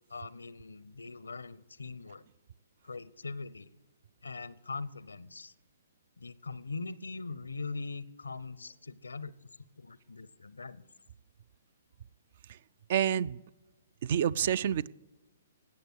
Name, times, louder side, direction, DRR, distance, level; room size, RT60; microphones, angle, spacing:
voice 1, 0.1-2.2 2.8-3.7 4.2-5.5 6.2-10.9, left 4 dB, 85° left, 19 dB, 0.6 m, -42 dB
voice 2, 12.9-13.4 14.0-14.9, right 9 dB, 50° right, 22 dB, 0.4 m, -28 dB
17.5 x 6.7 x 8.1 m, 1.1 s
figure-of-eight pair, 125°, 0 cm